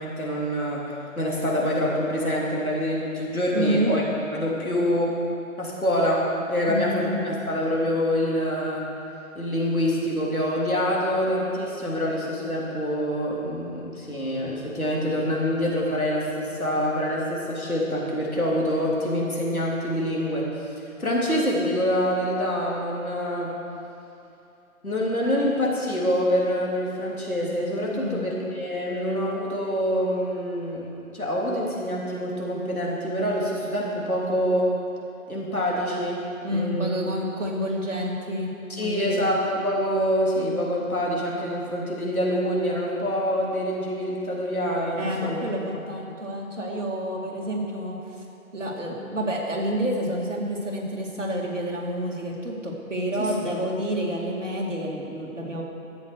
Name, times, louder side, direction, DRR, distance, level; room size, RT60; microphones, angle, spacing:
voice 1, 0.0-4.0 4.3-5.2 5.6-8.9 9.3-20.5 21.0-23.6 24.8-34.8 35.3-36.9 38.7-45.4 45.7-45.8 53.2-53.5, equal, 75° left, -4 dB, 3.4 m, -26 dB
voice 2, 3.5-3.9 6.7-7.2 27.9-28.3 36.4-39.3 44.9-48.0 48.5-55.6, equal, 55° right, -2 dB, 2.4 m, -29 dB
13.0 x 8.0 x 6.6 m, 2.7 s
figure-of-eight pair, 160°, 43 cm